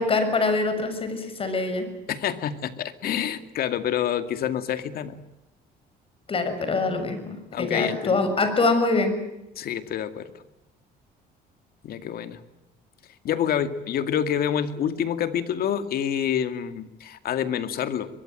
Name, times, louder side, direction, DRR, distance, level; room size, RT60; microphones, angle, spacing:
voice 1, 0.0-1.9 6.3-9.2, left 3 dB, 35° left, 9 dB, 6.5 m, -24 dB
voice 2, 2.1-5.2 7.5-8.2 9.6-10.3 11.8-12.4 13.2-18.1, left 9 dB, 65° left, 10 dB, 2.3 m, -27 dB
23.5 x 22.5 x 9.1 m, 0.93 s
cardioid pair, 110°, 17 cm